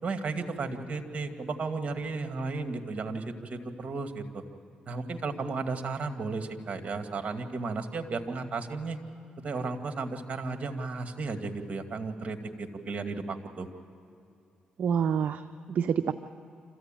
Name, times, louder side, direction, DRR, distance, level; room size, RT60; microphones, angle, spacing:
voice 1, 0.0-4.4 4.9-9.0 9.4-13.7, right 3 dB, 45° right, 6 dB, 2.1 m, -34 dB
voice 2, 14.8-16.1, right 7 dB, 65° right, 9 dB, 0.6 m, -27 dB
27.0 x 15.0 x 9.0 m, 2.6 s
cardioid pair, 70°, 3 cm